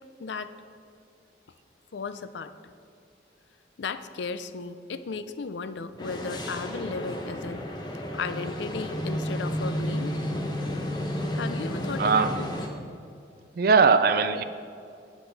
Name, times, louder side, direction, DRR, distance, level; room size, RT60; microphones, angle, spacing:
voice 1, 0.2-0.5 1.9-2.5 3.8-7.7 7.9-10.2 11.3-12.5, left 4 dB, 75° left, 12 dB, 0.5 m, -35 dB
sound 1, 6.0-12.7, equal, 25° left, 0.8 m, -32 dB
voice 2, 12.0-12.3 13.6-14.4, right 5 dB, 50° right, 10 dB, 0.4 m, -20 dB
9.9 x 8.3 x 4.0 m, 2.5 s
head